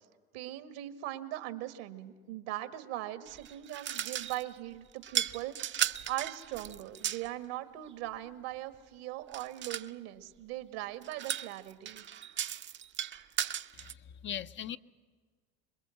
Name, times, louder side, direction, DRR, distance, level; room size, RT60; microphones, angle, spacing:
voice 1, 0.3-5.5 6.1-12.0, right 14 dB, 75° right, 1.7 m, -40 dB
sound 1, 3.3-4.5 5.0-7.3 9.3-9.9 11.0-13.9, right 10 dB, 35° right, 0.7 m, -36 dB
voice 2, 13.7-14.8, left 10 dB, 40° left, 0.7 m, -40 dB
27.0 x 21.5 x 7.7 m
hypercardioid pair, 85°, 31 cm